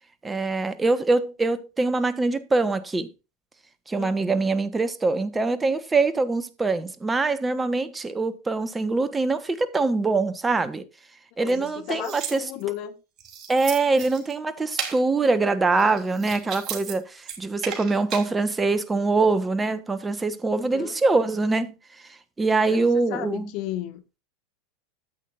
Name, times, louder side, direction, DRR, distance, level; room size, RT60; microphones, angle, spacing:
voice 1, 0.2-3.1 3.9-10.9 11.4-12.5 13.5-23.5, right 3 dB, 15° right, 1.2 m, -24 dB
voice 2, 11.4-13.0 20.5-21.0 22.7-24.2, left 13 dB, 50° left, 1.6 m, -34 dB
sound 1, 11.5-12.8 13.2-14.3 14.8-15.0 15.7-16.9 17.2-18.3, right 8 dB, 40° right, 3.0 m, -34 dB
13.5 x 8.5 x 2.6 m
hypercardioid pair, 90°, 0 cm